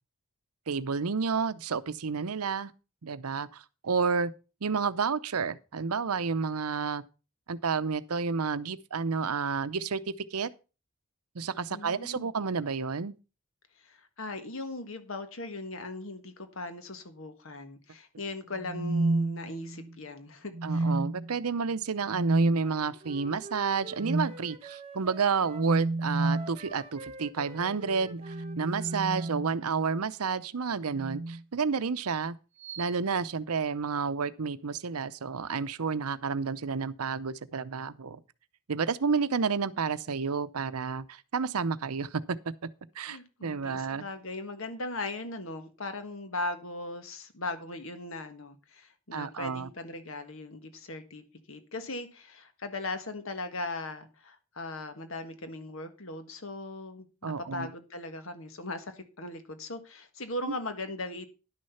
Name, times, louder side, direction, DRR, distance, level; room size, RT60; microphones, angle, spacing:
voice 1, 0.7-2.7 3.0-4.3 4.6-7.0 7.5-10.0 10.3-10.5 11.3-13.1 20.6-32.4 32.8-38.2 38.7-42.4 43.0-44.0 49.1-49.7 57.2-57.7 60.5-60.6, right 5 dB, 90° right, 0.7 m, -30 dB
voice 2, 11.7-12.3 13.8-20.9 43.0-61.3, left 2 dB, 65° left, 1.5 m, -39 dB
sound 1, 18.6-19.9 20.5-21.3 22.1-22.6 24.0-24.4 25.5-26.5 28.0-29.9 30.9-31.4 32.6-32.9, right 2 dB, 55° right, 0.8 m, -30 dB
Wind instrument woodwind instrument, 22.6-25.7 26.1-29.4, right 2 dB, 25° right, 1.1 m, -46 dB
11.0 x 6.5 x 5.7 m
head